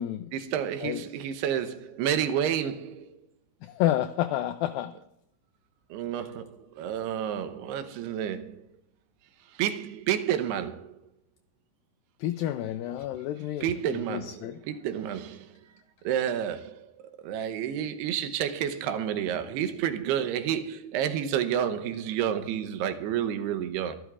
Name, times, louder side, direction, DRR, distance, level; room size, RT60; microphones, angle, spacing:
voice 1, 0.3-3.1 5.9-8.7 9.5-11.0 13.6-15.6 16.0-24.0, right 9 dB, 85° right, 3.0 m, -30 dB
voice 2, 3.6-4.9 12.2-14.5, left 12 dB, 80° left, 2.1 m, -30 dB
27.0 x 12.5 x 2.5 m
omnidirectional pair, 4.6 m